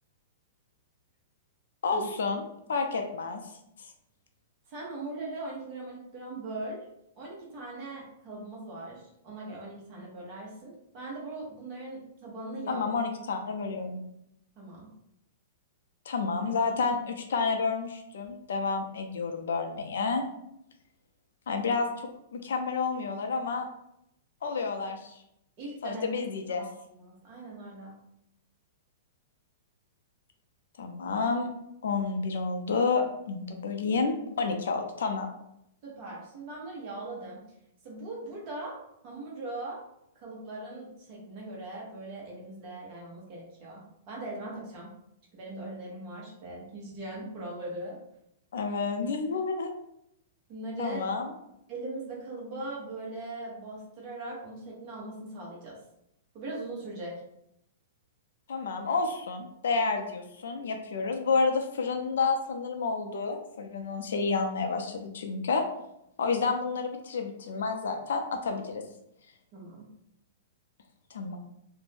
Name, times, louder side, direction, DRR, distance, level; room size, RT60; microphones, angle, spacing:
voice 1, 1.8-2.4 2.7-3.4 12.7-14.0 16.1-20.3 21.5-21.9 22.3-23.7 24.4-25.2 25.8-26.7 30.8-31.5 31.8-35.3 48.5-49.7 50.8-51.3 58.5-65.7 66.2-68.8 71.1-71.4, left 4 dB, 80° left, 4 dB, 0.5 m, -30 dB
voice 2, 4.7-6.9 7.2-12.9 14.6-14.9 25.6-26.3 26.6-28.0 35.8-37.4 37.8-39.8 40.1-44.9 45.3-48.0 50.5-51.0 51.7-55.8 56.3-57.2 69.5-69.9, right 2 dB, 30° right, -3 dB, 0.9 m, -40 dB
2.6 x 2.1 x 3.3 m, 0.79 s
hypercardioid pair, 170°, 0 cm